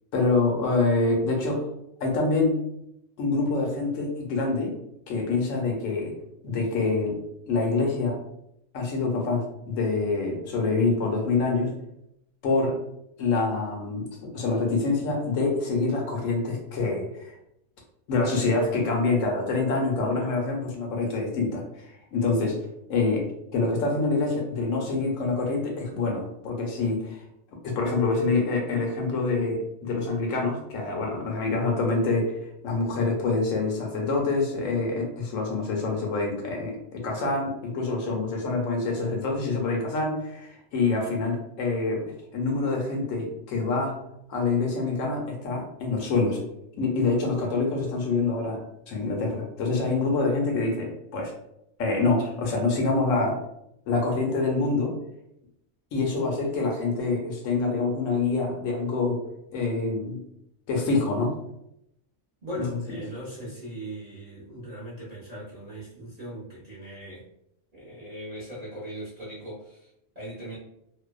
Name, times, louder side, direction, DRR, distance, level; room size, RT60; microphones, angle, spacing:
voice 1, 0.1-1.7 2.0-2.7 3.2-4.7 5.1-6.2 6.4-7.2 7.5-8.2 8.7-11.7 12.4-12.7 13.2-17.3 18.1-21.6 22.1-22.6 22.9-23.2 23.5-27.2 27.6-32.4 32.6-44.0 44.3-46.4 46.8-48.6 48.9-51.3 51.8-53.4 53.9-55.0 55.9-59.2 59.5-60.2 60.7-61.4 62.6-62.7, left 3 dB, 75° left, 0 dB, 1.0 m, -26 dB
voice 2, 62.4-67.3 67.7-70.6, right 1 dB, 40° right, -8 dB, 0.6 m, -39 dB
2.5 x 2.1 x 2.2 m, 0.80 s
omnidirectional pair, 1.4 m